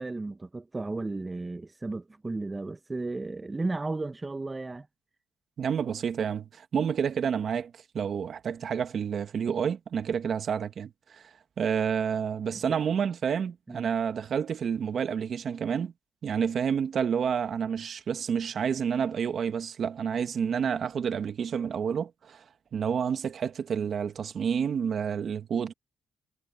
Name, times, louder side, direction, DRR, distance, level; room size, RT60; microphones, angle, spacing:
voice 1, 0.0-4.9 12.7-12.8 13.7-13.9, right 3 dB, 20° right, 1.4 m, -34 dB
voice 2, 5.6-11.2 11.6-15.9 16.2-22.4 22.7-25.7, right 7 dB, 55° right, 1.8 m, -29 dB
cardioid pair, 90°, 0 cm